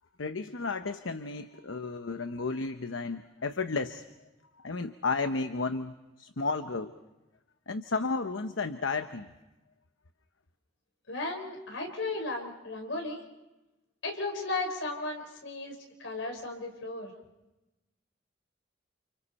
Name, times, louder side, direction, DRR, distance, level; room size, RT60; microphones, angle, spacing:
voice 1, 0.2-4.0 4.6-6.9 7.7-9.3, left 4 dB, 90° left, 8 dB, 1.0 m, -33 dB
voice 2, 11.1-13.2 14.0-17.1, left 2 dB, 75° left, 3 dB, 4.9 m, -35 dB
30.0 x 29.5 x 4.3 m, 1.0 s
head